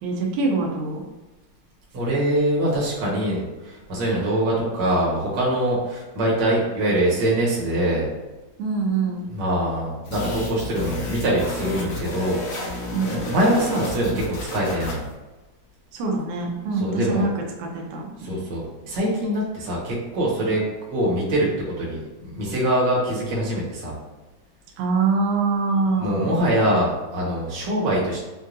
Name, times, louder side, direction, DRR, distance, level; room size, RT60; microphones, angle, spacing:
voice 1, 0.0-1.0 8.6-9.3 12.9-13.2 15.9-18.5 24.8-26.4, right 4 dB, 85° right, 0 dB, 2.1 m, -24 dB
voice 2, 1.9-8.1 9.3-15.0 16.8-17.2 18.2-20.6 20.9-21.5 21.8-23.9 26.0-28.2, right 1 dB, 50° right, -6 dB, 1.4 m, -23 dB
sound 1, 10.0-15.1, left 1 dB, 80° left, 2.6 m, -32 dB
6.2 x 2.5 x 2.6 m, 1.1 s
omnidirectional pair, 3.4 m